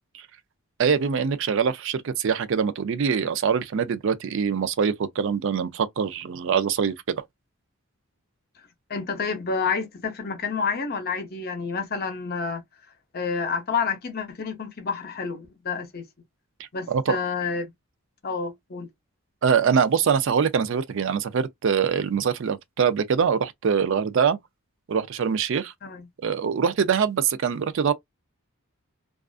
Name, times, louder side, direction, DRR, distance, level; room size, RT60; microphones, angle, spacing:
voice 1, 0.8-7.2 16.9-17.2 19.4-24.4 24.9-25.7 26.2-27.9, right 6 dB, 55° right, 0.4 m, -23 dB
voice 2, 8.9-12.6 13.1-16.0 16.7-17.7 18.2-18.9 25.8-26.1, left 5 dB, 45° left, 0.6 m, -29 dB
2.4 x 2.3 x 2.3 m
head